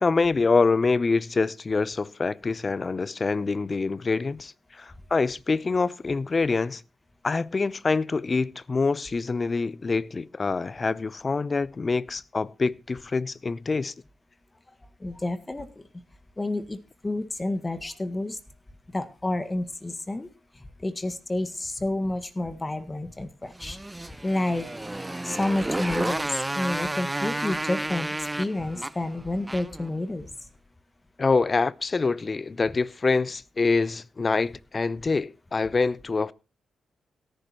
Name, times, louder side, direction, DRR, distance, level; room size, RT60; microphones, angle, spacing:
voice 1, 0.0-6.8 7.2-13.9 31.2-36.3, left 4 dB, 40° left, 0.6 m, -25 dB
voice 2, 15.0-15.7 16.4-16.8 17.0-18.4 18.9-20.3 20.5-23.8 24.2-24.7 25.2-30.3, left 2 dB, 25° left, 1.6 m, -29 dB
Motorcycle, 23.5-29.9, right 1 dB, 15° right, 0.7 m, -31 dB
17.5 x 10.0 x 3.0 m
hypercardioid pair, 45°, 0 cm